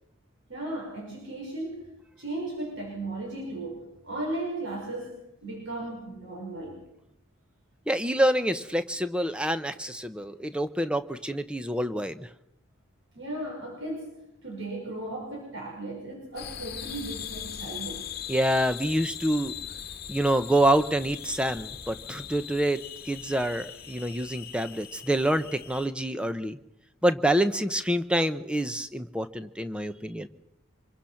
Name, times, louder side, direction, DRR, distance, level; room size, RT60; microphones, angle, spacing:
voice 1, 0.5-1.9 2.2-6.8 13.1-14.1 14.4-18.1, right 2 dB, 60° right, -1 dB, 5.8 m, -36 dB
voice 2, 7.9-12.3 18.3-19.5 20.1-22.8 23.0-26.6 27.0-30.3, right 1 dB, 5° right, 11 dB, 0.9 m, -26 dB
sound 1, 16.4-25.9, left 9 dB, 45° left, 1.3 m, -40 dB
26.0 x 23.0 x 5.9 m, 0.82 s
head